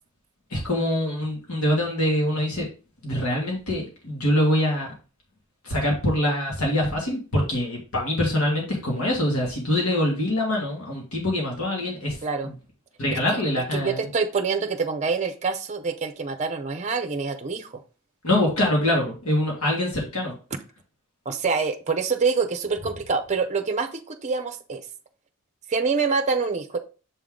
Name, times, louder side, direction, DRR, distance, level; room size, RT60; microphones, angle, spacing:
voice 1, 0.5-2.7 3.0-4.9 5.6-12.2 12.4-12.5 13.0-14.1 18.2-20.3, left 1 dB, 80° left, -1 dB, 1.9 m, -24 dB
voice 2, 12.2-12.5 13.3-13.4 13.7-17.7 21.3-24.8 25.7-26.8, right 4 dB, 30° right, 6 dB, 0.6 m, -26 dB
6.8 x 3.7 x 3.7 m, 0.34 s
head